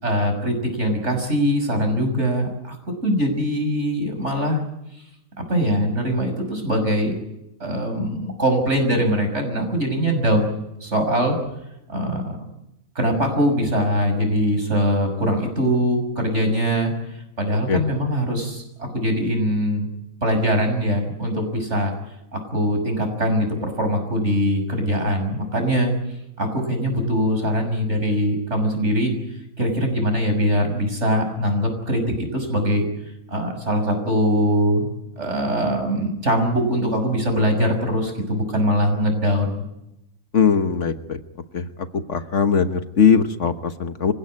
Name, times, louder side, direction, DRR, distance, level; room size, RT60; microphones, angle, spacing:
voice 1, 0.0-4.6 5.4-7.1 7.6-10.5 10.8-11.4 11.9-12.4 12.9-16.9 17.4-19.9 20.2-21.9 22.3-25.9 26.4-29.1 29.6-32.8 33.3-34.9 35.2-39.6, equal, 55° right, 4 dB, 6.6 m, -22 dB
voice 2, 40.3-41.2 41.5-41.6 41.9-44.1, left 6 dB, 65° left, 9 dB, 1.5 m, -20 dB
26.0 x 16.5 x 9.7 m, 0.85 s
omnidirectional pair, 1.4 m